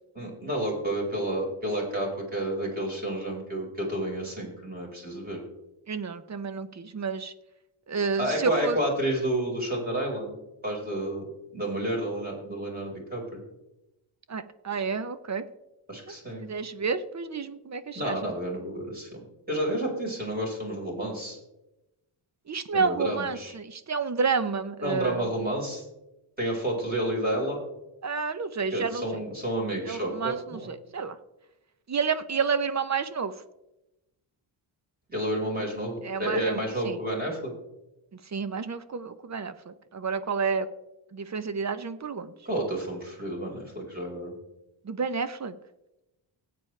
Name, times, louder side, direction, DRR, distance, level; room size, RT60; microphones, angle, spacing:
voice 1, 0.1-5.4 8.2-10.3 10.6-11.2 11.5-13.4 15.9-16.4 17.9-21.4 22.7-23.5 24.8-25.8 26.4-27.6 28.7-30.7 35.1-37.5 42.4-44.3, right 1 dB, 20° right, -2 dB, 4.8 m, -30 dB
voice 2, 5.9-7.3 7.9-8.8 14.3-15.4 16.1-16.2 16.4-18.2 22.5-25.3 28.0-29.2 29.8-31.2 31.9-33.3 36.0-37.0 38.3-40.7 41.1-42.3 44.8-45.5, right 5 dB, 35° right, 12 dB, 0.8 m, -30 dB
19.5 x 8.6 x 3.3 m, 0.94 s
wide cardioid pair, 120°, 49 cm